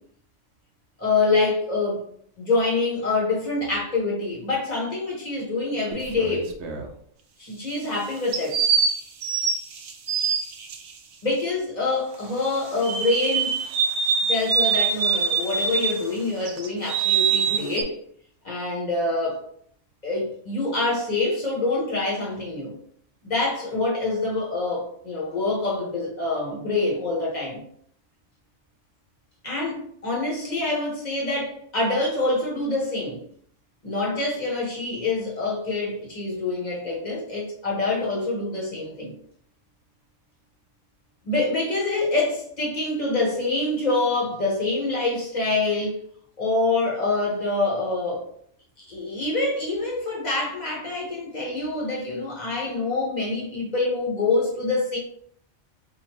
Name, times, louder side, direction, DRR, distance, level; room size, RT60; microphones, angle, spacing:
voice 1, 1.0-2.0 2.4-6.5 7.4-8.6 11.2-13.5 14.3-18.0 18.4-19.4 20.0-22.7 23.2-27.6 29.4-33.2 33.8-39.1 41.2-46.0 46.4-48.2 48.9-55.0, left 3 dB, 35° left, 1.4 m, -26 dB
sound 1, 5.9-6.9 8.3-10.8 12.8-16.1 16.5-17.8, right 6 dB, 70° right, 0.8 m, -24 dB
5.0 x 2.6 x 2.9 m
omnidirectional pair, 1.3 m